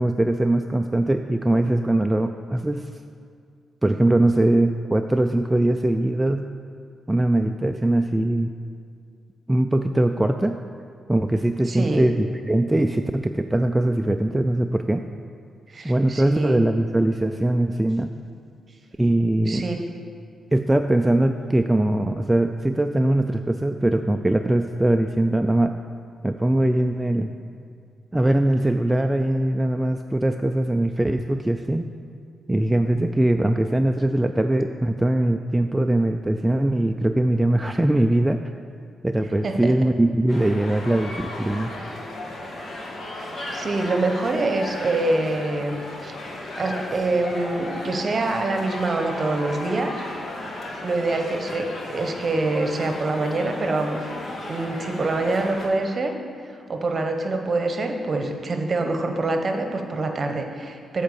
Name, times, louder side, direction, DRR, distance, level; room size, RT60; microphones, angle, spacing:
voice 1, 0.0-2.9 3.8-6.5 7.1-8.5 9.5-10.6 11.1-15.0 15.8-18.1 19.0-19.6 20.5-25.7 26.2-27.3 28.1-31.9 32.5-38.4 39.0-41.7, right 1 dB, 15° right, 5 dB, 0.3 m, -21 dB
voice 2, 11.7-12.1 15.7-16.6 19.5-19.8 39.4-39.7 43.1-46.2 46.6-49.9 50.8-54.1 54.5-56.1 56.4-61.0, right 2 dB, 45° right, 4 dB, 0.9 m, -25 dB
sound 1, 40.3-55.7, left 1 dB, 55° left, 1.4 m, -35 dB
7.7 x 4.4 x 7.0 m, 2.2 s
cardioid pair, 75°, 0 cm